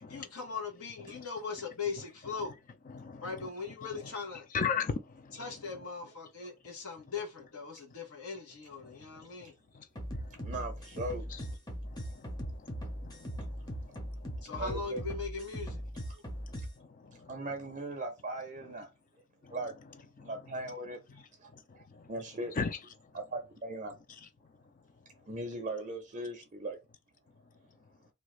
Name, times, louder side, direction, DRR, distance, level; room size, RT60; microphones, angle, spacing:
voice 1, 0.1-2.5 3.2-4.5 5.3-9.5 14.4-15.8, left 5 dB, 75° left, 1.2 m, -40 dB
voice 2, 2.9-3.5 3.9-4.1 4.5-5.5 8.8-9.3 9.7-9.9 10.1-10.5 11.3-11.4 11.8-14.4 16.3-17.4 19.4-19.6 20.2-20.3 21.1-21.2 21.5-22.1 22.6-22.8, left 5 dB, 35° left, 0.4 m, -39 dB
sound 1, 10.0-16.7, equal, 15° left, 0.7 m, -39 dB
voice 3, 10.4-11.3 14.6-15.0 16.1-16.2 17.3-18.9 19.5-19.7 20.2-22.5 23.1-23.9 25.3-26.8, right 2 dB, 35° right, 0.5 m, -39 dB
2.8 x 2.3 x 3.1 m
head